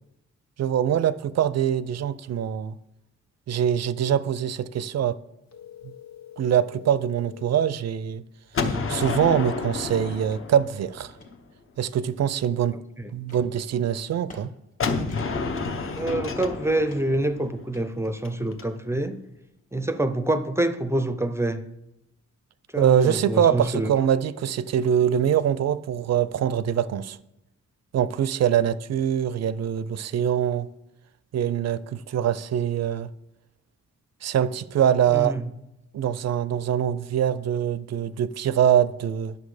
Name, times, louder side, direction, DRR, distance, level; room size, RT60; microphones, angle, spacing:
voice 1, 0.6-2.8 3.5-5.2 6.4-8.2 8.6-11.1 11.8-12.8 13.1-14.5 22.8-27.2 27.9-30.7 31.3-33.1 34.2-35.4 35.9-39.4, right 9 dB, 60° right, 0.5 m, -23 dB
sound 1, 5.5-7.6, left 10 dB, 65° left, 1.4 m, -45 dB
Gunshot gunfire, 8.5-11.4 14.8-18.6, left 4 dB, 45° left, 0.8 m, -30 dB
sound 2, 10.3-10.4 10.9-11.3 11.8-12.8 13.3-13.5 14.1-14.5 14.7-14.8 15.1-15.6 16.0-16.5 16.9-17.3 17.7-18.5, left 2 dB, 30° left, 1.7 m, -50 dB
voice 2, 15.9-19.2 19.7-21.6 22.7-23.9 35.1-35.5, right 1 dB, 10° right, 0.5 m, -26 dB
11.0 x 6.7 x 4.8 m
wide cardioid pair, 165°, 29 cm